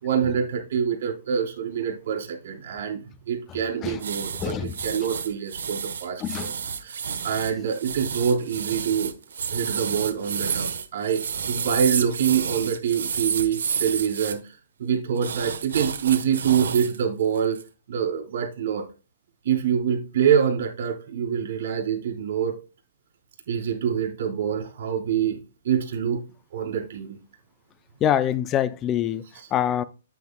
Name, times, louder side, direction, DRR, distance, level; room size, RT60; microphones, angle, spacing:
voice 1, 0.0-3.0 3.3-9.1 9.5-17.6 17.9-18.8 19.4-22.6 23.5-25.4 25.6-26.2 26.5-27.2 29.2-29.5, right 8 dB, 60° right, 4.6 m, -25 dB
sound 1, 4.0-14.3 15.2-17.0 17.3-17.6, right 7 dB, 75° right, 1.1 m, -30 dB
voice 2, 4.4-4.7 6.2-6.5 28.0-29.2 29.5-29.8, left 10 dB, 20° left, 0.4 m, -24 dB
9.4 x 9.2 x 2.3 m
hypercardioid pair, 150°, 0 cm